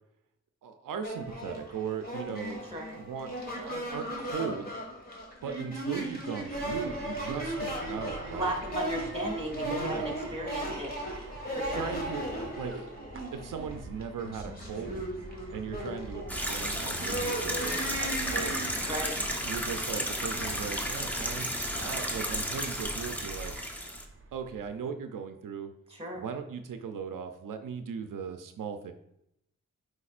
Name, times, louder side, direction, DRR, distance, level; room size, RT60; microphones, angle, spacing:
voice 1, 0.6-2.6 2.9-4.7 5.4-8.5 9.5-10.2 11.7-12.2 12.6-12.8 13.3-15.1 15.5-18.7 19.4-23.5 24.3-25.7 26.1-28.9, right 6 dB, 90° right, 7 dB, 0.5 m, -38 dB
sound 1, 1.0-20.7, right 1 dB, 30° left, 1.6 m, -37 dB
sound 2, 6.5-24.8, right 2 dB, 40° right, 0.7 m, -45 dB
voice 2, 8.3-10.9 11.6-11.9 18.8-19.1 26.0-26.2, right 1 dB, 20° right, 0 dB, 1.9 m, -35 dB
sound 3, 16.3-24.1, equal, 5° left, 0.8 m, -33 dB
8.4 x 4.8 x 2.4 m, 0.79 s
wide cardioid pair, 85°, 31 cm